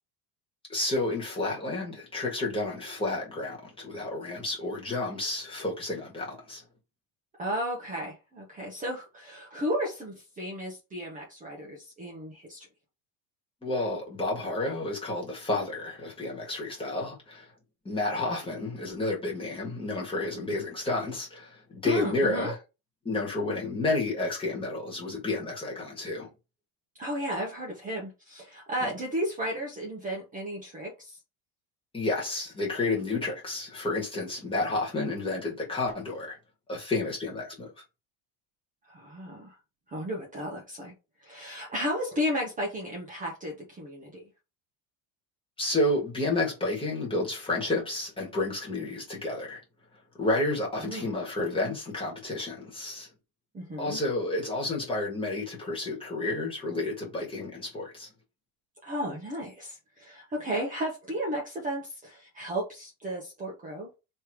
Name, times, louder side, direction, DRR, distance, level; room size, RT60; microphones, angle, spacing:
voice 1, 0.7-6.6 13.6-17.5 17.9-22.6 23.1-26.3 28.8-28.9 31.9-36.4 36.7-37.7 45.6-49.6 50.2-53.1 53.8-58.1, left 2 dB, 10° left, 1.7 m, -30 dB
voice 2, 7.4-12.7 21.8-22.5 27.0-31.2 38.9-39.6 39.9-40.9 41.2-44.2 50.8-51.1 53.5-54.0 58.8-63.9, equal, 15° right, 1.0 m, -34 dB
3.3 x 3.2 x 4.6 m
cardioid pair, 165°, 46 cm